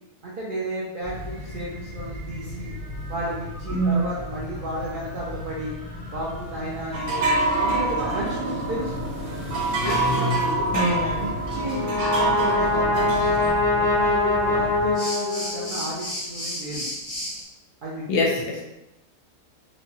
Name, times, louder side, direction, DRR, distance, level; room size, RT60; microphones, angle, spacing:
voice 1, 0.2-2.7 3.1-5.8 6.1-9.0 9.8-10.7 11.2-13.1 13.7-16.9 17.8-18.3, right 1 dB, 70° right, -6 dB, 0.5 m, -33 dB
sound 1, 1.0-17.4, left 1 dB, 35° left, 0.6 m, -34 dB
voice 2, 3.7-4.1 10.7-11.3 18.1-18.6, equal, 70° left, 0 dB, 0.9 m, -23 dB
sound 2, 6.9-13.5, right 2 dB, 90° right, 1.4 m, -26 dB
Brass instrument, 11.5-15.9, left 2 dB, 85° left, 1.1 m, -23 dB
3.1 x 2.1 x 2.7 m, 0.91 s
omnidirectional pair, 1.6 m